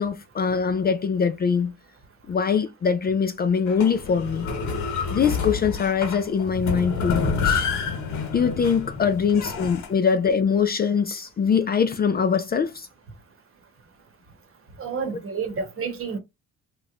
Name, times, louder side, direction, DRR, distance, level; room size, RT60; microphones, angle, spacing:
voice 1, 0.0-1.7 2.3-4.5 5.1-7.7 8.3-12.9, left 6 dB, 30° left, 0.4 m, -23 dB
sound 1, 3.7-9.9, left 5 dB, 75° left, 1.0 m, -28 dB
voice 2, 14.8-16.2, right 5 dB, 45° right, 1.0 m, -29 dB
3.0 x 2.1 x 3.6 m
cardioid pair, 90°, 30 cm